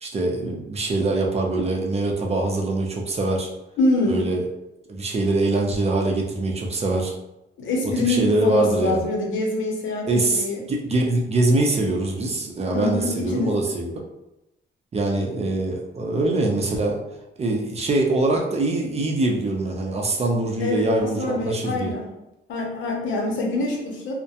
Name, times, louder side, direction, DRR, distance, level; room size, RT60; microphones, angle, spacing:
voice 1, 0.0-3.5 4.1-4.4 4.9-7.1 8.1-9.0 10.1-14.0 14.9-17.0 17.4-21.9, right 2 dB, 30° right, 0 dB, 0.5 m, -23 dB
voice 2, 3.8-4.3 7.6-10.6 12.7-13.8 20.6-22.1 22.5-24.1, left 2 dB, 75° left, -2 dB, 0.8 m, -25 dB
2.3 x 2.1 x 2.7 m, 0.91 s
cardioid pair, 90°, 20 cm